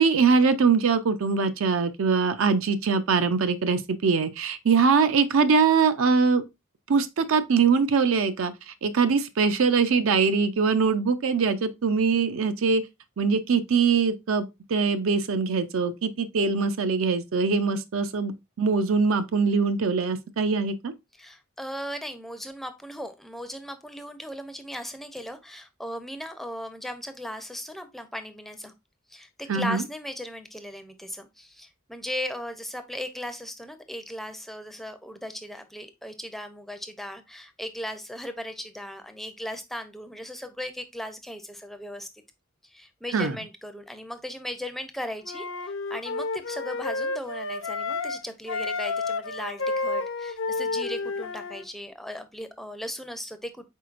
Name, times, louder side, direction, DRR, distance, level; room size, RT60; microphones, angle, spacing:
voice 1, 0.0-6.4 6.9-12.8 13.2-18.3 18.6-20.9 29.5-29.8 43.1-43.4, right 5 dB, 80° right, 0.5 m, -22 dB
voice 2, 21.2-28.7 29.1-42.1 42.6-53.7, equal, ahead, 0.4 m, -37 dB
Wind instrument woodwind instrument, 45.2-48.2 48.5-51.6, left 3 dB, 65° left, 0.5 m, -30 dB
4.5 x 4.2 x 2.4 m
head